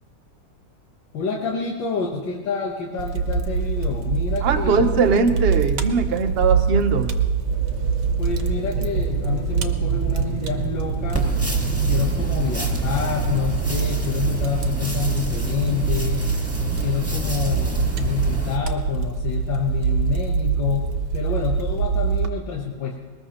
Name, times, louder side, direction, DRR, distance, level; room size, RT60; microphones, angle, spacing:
voice 1, 1.1-4.9 5.3-5.4 8.2-11.3 11.8-16.3 16.8-23.0, left 6 dB, 90° left, -1 dB, 1.9 m, -28 dB
Fire, 3.0-22.3, right 6 dB, 70° right, 1.6 m, -24 dB
voice 2, 4.4-7.1, right 4 dB, 45° right, 6 dB, 0.9 m, -20 dB
sound 1, 7.4-13.4, right 3 dB, 40° left, 2.4 m, -33 dB
sound 2, 11.1-18.6, right 1 dB, 10° right, 1.7 m, -29 dB
22.0 x 19.5 x 3.0 m, 1.4 s
omnidirectional pair, 2.0 m